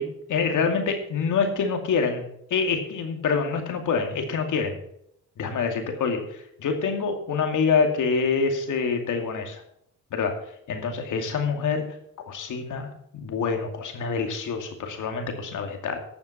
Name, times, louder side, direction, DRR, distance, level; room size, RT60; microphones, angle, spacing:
voice 1, 0.0-2.2 2.5-4.8 5.4-9.6 10.1-10.4 10.7-11.8 12.2-16.0, left 5 dB, 65° left, 4 dB, 2.4 m, -26 dB
12.0 x 7.1 x 5.8 m, 0.73 s
supercardioid pair, 65°, 33 cm